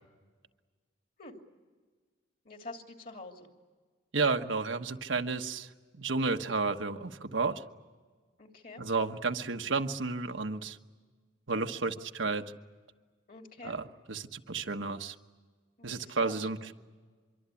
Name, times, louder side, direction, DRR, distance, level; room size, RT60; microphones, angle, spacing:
voice 1, 2.4-3.5 8.4-8.8 13.3-13.8 15.8-16.5, left 2 dB, 50° left, 3 dB, 2.8 m, -47 dB
voice 2, 4.1-5.7 6.0-7.6 8.8-10.8 11.5-12.4 13.6-15.1 15.8-16.7, right 4 dB, 85° right, 5 dB, 1.2 m, -32 dB
25.0 x 23.5 x 8.4 m, 1.5 s
head